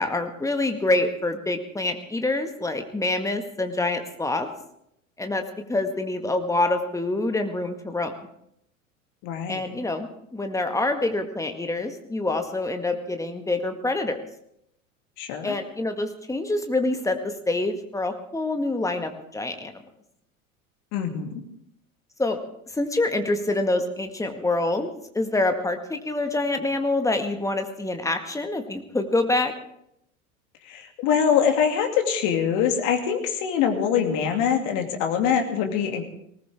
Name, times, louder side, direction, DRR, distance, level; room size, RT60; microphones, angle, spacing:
voice 1, 0.0-4.5 5.2-8.1 9.5-14.2 15.4-19.8 22.2-22.4 22.7-29.5, left 2 dB, 5° left, 6 dB, 1.8 m, -26 dB
voice 2, 9.2-9.6 15.2-15.6 20.9-21.4 30.6-36.1, left 7 dB, 45° left, 4 dB, 2.6 m, -24 dB
19.5 x 19.0 x 3.6 m, 0.75 s
figure-of-eight pair, 80°, 42 cm